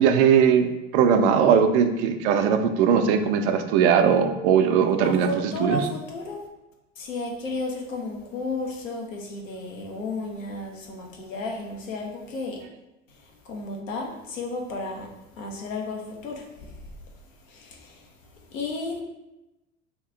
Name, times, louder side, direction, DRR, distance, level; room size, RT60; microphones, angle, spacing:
voice 1, 0.0-5.3 5.6-5.8, right 7 dB, 60° right, 6 dB, 0.5 m, -19 dB
voice 2, 5.0-6.4 7.0-12.6 13.1-15.1 15.3-17.0 17.4-19.0, left 2 dB, 80° left, 0 dB, 0.8 m, -33 dB
2.9 x 2.3 x 3.8 m, 0.97 s
figure-of-eight pair, 75°, 39 cm